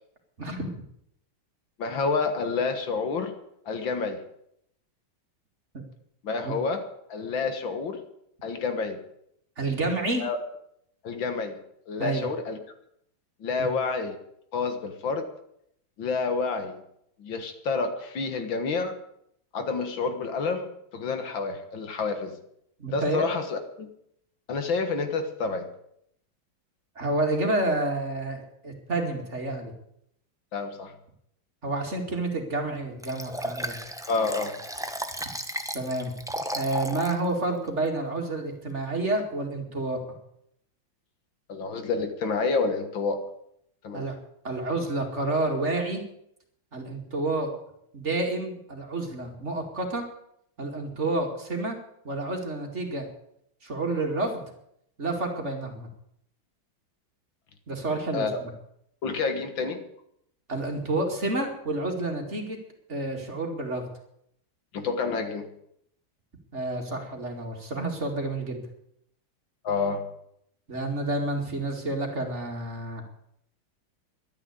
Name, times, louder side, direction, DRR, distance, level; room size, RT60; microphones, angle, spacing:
voice 1, 0.4-0.7 6.4-6.5 9.6-10.3 12.0-12.3 13.6-13.7 22.8-23.3 27.0-29.7 31.6-33.8 35.7-36.1 36.5-40.0 43.9-44.1 44.4-46.0 46.7-47.5 47.9-50.1 50.6-51.8 52.0-53.1 53.6-54.4 55.0-55.9 57.7-58.5 60.5-62.6 62.9-63.9 66.5-68.6 70.7-73.0, right 2 dB, 35° right, 2 dB, 2.6 m, -29 dB
voice 2, 1.8-3.3 3.7-4.2 6.2-8.0 8.4-9.0 10.2-10.4 11.0-11.6 11.9-12.6 13.4-14.2 14.5-15.3 16.0-16.8 17.2-19.0 19.5-20.7 20.9-22.4 22.9-23.9 24.5-25.7 30.5-30.9 34.1-34.6 41.5-43.3 43.8-44.1 58.1-58.3 59.0-59.8 64.7-65.5 69.6-70.0, left 4 dB, 70° left, 7 dB, 2.3 m, -29 dB
Liquid, 33.0-37.2 37.7-37.8, equal, 5° right, 0.5 m, -34 dB
12.0 x 9.9 x 9.6 m, 0.74 s
omnidirectional pair, 2.2 m